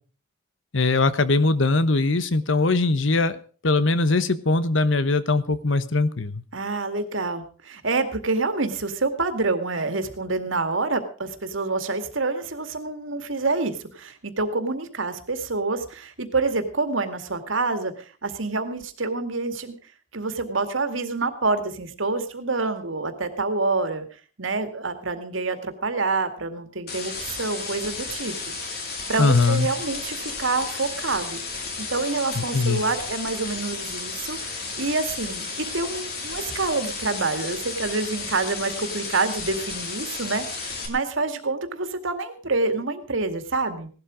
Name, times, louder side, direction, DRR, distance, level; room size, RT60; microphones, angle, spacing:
voice 1, 0.7-6.4 29.2-29.7 32.4-32.8, left 3 dB, 75° left, 14 dB, 1.1 m, -21 dB
voice 2, 6.5-19.7 20.1-24.1 24.4-28.3 28.7-28.8 29.1-43.9, right 3 dB, 80° right, 8 dB, 2.2 m, -27 dB
sound 1, 26.9-40.9, left 4 dB, 50° left, 3.5 m, -33 dB
17.5 x 12.0 x 5.1 m, 0.40 s
head